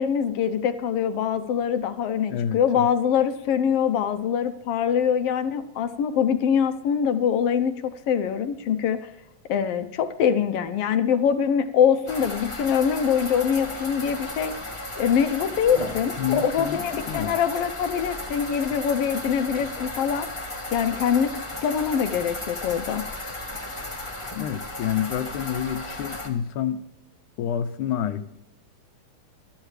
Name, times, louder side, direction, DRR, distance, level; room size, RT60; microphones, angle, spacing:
voice 1, 0.0-9.1 9.5-14.5 15.0-20.3 20.7-21.3 21.6-23.0, left 8 dB, 70° left, 9 dB, 1.5 m, -24 dB
voice 2, 2.3-2.9 16.2-17.3 24.3-26.8 27.4-28.3, left 9 dB, 90° left, 9 dB, 2.3 m, -28 dB
sound 1, 12.1-26.3, left 2 dB, 20° left, 0.7 m, -35 dB
23.0 x 12.0 x 3.3 m, 0.86 s
omnidirectional pair, 3.4 m